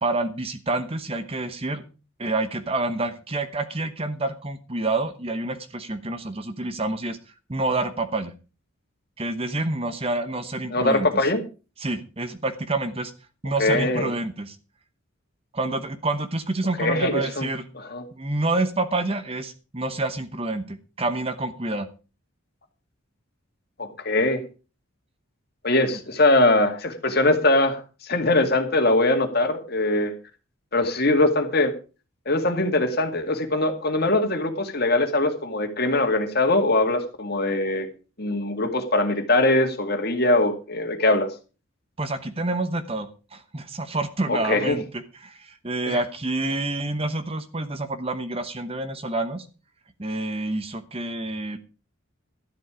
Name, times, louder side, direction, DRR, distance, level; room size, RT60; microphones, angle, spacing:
voice 1, 0.0-1.8 2.2-7.2 7.5-8.3 9.2-11.3 11.8-13.1 13.4-14.6 15.5-17.7 18.1-21.9 42.0-49.5 50.0-51.6, right 2 dB, 30° right, 10 dB, 1.0 m, -28 dB
voice 2, 10.7-11.4 13.6-14.1 16.8-17.5 17.7-18.0 23.8-24.4 25.6-30.1 30.7-31.7 32.3-37.9 38.2-41.3 44.3-44.8 45.9-46.0, left 2 dB, 50° left, 6 dB, 2.1 m, -22 dB
12.5 x 11.0 x 5.0 m, 0.34 s
head